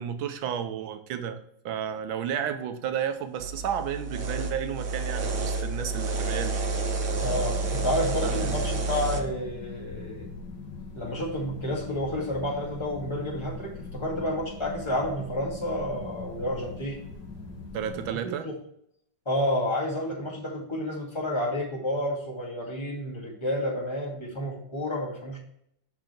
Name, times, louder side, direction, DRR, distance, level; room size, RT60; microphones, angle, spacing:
voice 1, 0.0-1.4 1.6-6.6 8.2-8.6 17.7-18.5, right 8 dB, 85° right, 8 dB, 1.6 m, -32 dB
sound 1, 3.4-9.2, right 3 dB, 60° right, 1.6 m, -29 dB
sound 2, 7.1-18.1, left 3 dB, 55° left, 1.8 m, -41 dB
voice 2, 7.2-10.3 10.9-17.0 18.2-18.5 19.3-25.4, left 1 dB, 15° left, -3 dB, 2.1 m, -30 dB
6.5 x 5.9 x 4.4 m, 0.70 s
omnidirectional pair, 2.1 m